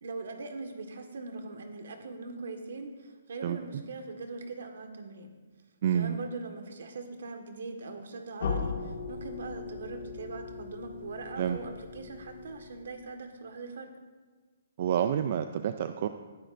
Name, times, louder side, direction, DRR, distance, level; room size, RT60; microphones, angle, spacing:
voice 1, 0.0-5.3 5.9-13.9, right 3 dB, 65° right, 5 dB, 1.6 m, -41 dB
voice 2, 5.8-6.2 11.4-11.6 14.8-16.1, right 9 dB, 40° right, 9 dB, 0.4 m, -28 dB
sound 1, 8.4-13.2, left 5 dB, 60° left, 1.9 m, -38 dB
19.0 x 10.5 x 2.6 m, 1.4 s
hypercardioid pair, 175°, 0 cm